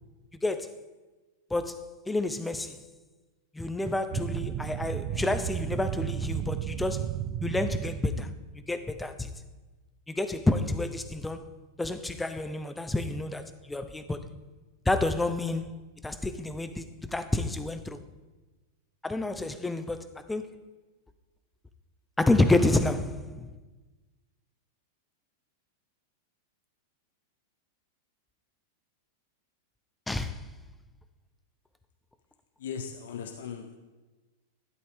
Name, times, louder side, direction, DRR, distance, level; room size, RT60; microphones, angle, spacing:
voice 1, 0.4-0.8 1.5-2.8 3.5-7.1 7.4-9.3 10.1-11.5 11.8-14.3 14.9-15.8 16.0-18.0 19.0-20.6 22.2-23.5 30.1-30.4, left 2 dB, 5° left, 0.7 m, -29 dB
sound 1, 4.1-8.3, right 12 dB, 40° right, 0.4 m, -33 dB
voice 2, 32.6-33.8, left 7 dB, 80° left, 0.9 m, -38 dB
12.5 x 11.0 x 3.6 m
supercardioid pair, 140°, 0 cm